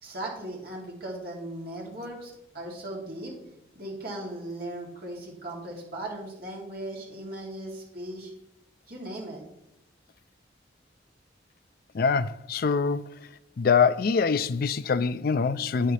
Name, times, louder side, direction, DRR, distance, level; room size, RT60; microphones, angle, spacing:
voice 1, 0.0-3.4 3.7-8.3 8.9-9.4, right 1 dB, 55° right, 2.7 m, -38 dB
voice 2, 11.9-13.1 13.6-15.9, left 5 dB, 55° left, 0.4 m, -24 dB
10.0 x 9.1 x 3.3 m
head